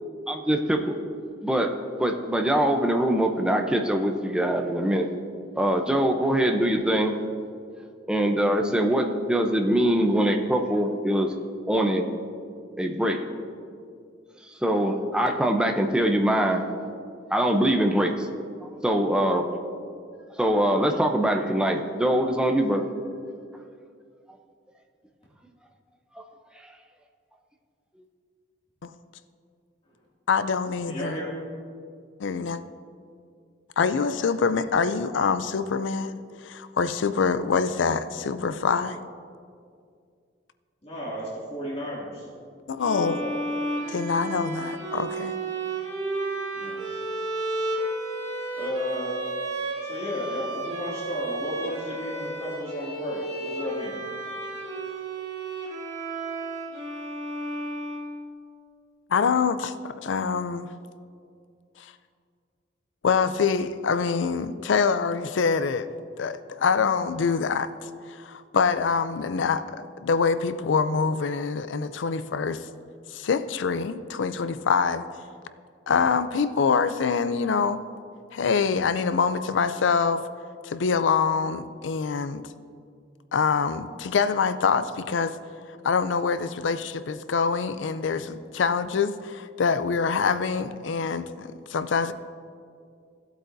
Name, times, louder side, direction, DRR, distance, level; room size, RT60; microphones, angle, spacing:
voice 1, 0.3-1.0 1.4-1.7 2.0-5.1 5.6-7.2 8.1-11.3 11.7-12.1 12.8-13.2 14.6-16.6 17.3-18.1 18.6-19.4 20.4-22.8 26.2-26.3, right 1 dB, 5° right, 3 dB, 0.6 m, -23 dB
voice 2, 30.3-31.2 32.2-32.6 33.8-39.0 42.7-43.2 43.9-45.3 59.1-59.6 59.8-60.7 61.8-61.9 63.0-65.9 66.2-67.7 68.1-72.7 73.1-75.0 75.9-77.8 78.3-80.2 80.6-82.4 83.3-85.4 85.8-92.1, left 5 dB, 80° left, 12 dB, 0.4 m, -25 dB
voice 3, 30.9-31.5 34.1-34.4 40.8-42.3 43.0-43.4 46.5-46.8 48.5-49.1 49.8-54.0, equal, 35° left, -6 dB, 2.3 m, -33 dB
sound 1, 42.8-58.5, right 2 dB, 35° right, 2.3 m, -32 dB
16.5 x 8.1 x 2.7 m, 2.3 s
head